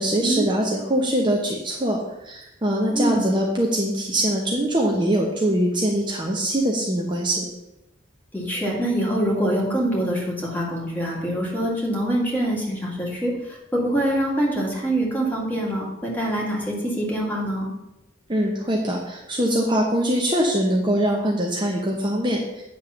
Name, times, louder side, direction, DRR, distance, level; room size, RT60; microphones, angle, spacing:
voice 1, 0.0-2.0 2.2-7.5 18.3-22.6, right 1 dB, 25° right, -1 dB, 0.9 m, -23 dB
voice 2, 2.9-3.3 8.3-17.7, right 1 dB, 10° left, -4 dB, 2.3 m, -25 dB
9.2 x 3.6 x 7.0 m, 0.93 s
head